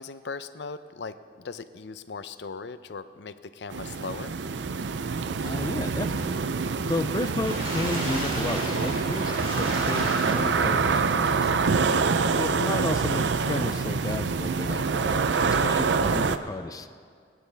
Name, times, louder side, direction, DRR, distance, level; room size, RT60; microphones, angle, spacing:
voice 1, 0.0-4.3, left 4 dB, 75° left, 12 dB, 0.6 m, -39 dB
sound 1, 3.7-16.4, right 5 dB, 80° right, 0.5 m, -26 dB
voice 2, 5.4-6.4 6.9-11.5 12.3-16.9, left 2 dB, 20° left, 10 dB, 0.3 m, -33 dB
Water / Splash splatter, 7.0-10.9 11.4-11.5 11.9-12.0, right 1 dB, 35° right, 3.2 m, -34 dB
27.0 x 9.5 x 3.4 m, 2.1 s
head